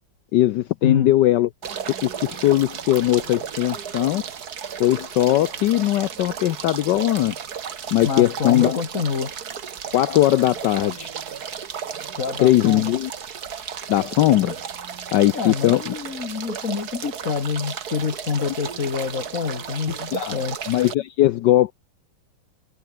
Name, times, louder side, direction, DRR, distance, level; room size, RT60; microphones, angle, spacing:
voice 1, 0.3-4.2 4.8-7.3 7.9-8.8 9.9-11.1 12.4-13.1 13.9-14.5 15.1-15.9 20.1-20.4 20.7-21.7, left 14 dB, 70° left, 1.1 m, -19 dB
voice 2, 0.8-1.1 8.0-9.3 12.2-13.0 15.3-20.6, left 6 dB, 40° left, 2.0 m, -27 dB
sound 1, 1.6-21.0, right 7 dB, 50° right, 1.9 m, -34 dB
omnidirectional pair, 2.3 m